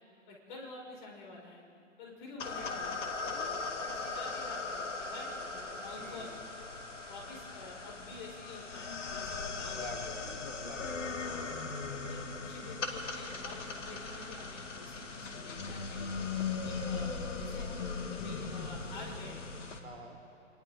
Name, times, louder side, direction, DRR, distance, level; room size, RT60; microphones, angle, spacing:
voice 1, 0.3-1.6 2.0-6.3 7.1-10.4 11.2-11.5 12.0-16.2 16.6-17.8 18.1-19.4, left 2 dB, 40° left, -2 dB, 5.9 m, -49 dB
sound 1, 2.4-19.8, left 4 dB, 65° left, 2.3 m, -39 dB
voice 2, 6.0-6.4 9.7-11.4 16.6-16.9 19.8-20.2, right 2 dB, 75° right, 2 dB, 4.4 m, -49 dB
28.0 x 25.5 x 3.8 m, 2.9 s
figure-of-eight pair, 130°, 39 cm